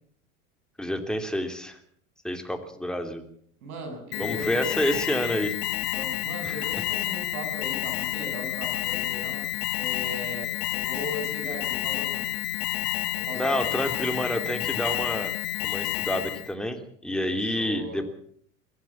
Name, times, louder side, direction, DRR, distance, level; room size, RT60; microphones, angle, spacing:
voice 1, 0.8-1.8 2.2-3.2 4.2-5.6 6.4-6.6 13.3-15.3 15.6-18.1, equal, ahead, 5 dB, 3.2 m, -28 dB
voice 2, 3.6-4.6 5.9-9.5 9.7-12.3 13.1-13.7 17.3-18.0, right 1 dB, 80° right, 5 dB, 7.6 m, -38 dB
Alarm, 4.1-16.5, left 16 dB, 55° left, 1.8 m, -30 dB
22.5 x 16.0 x 7.3 m, 0.62 s
hypercardioid pair, 90°, 43 cm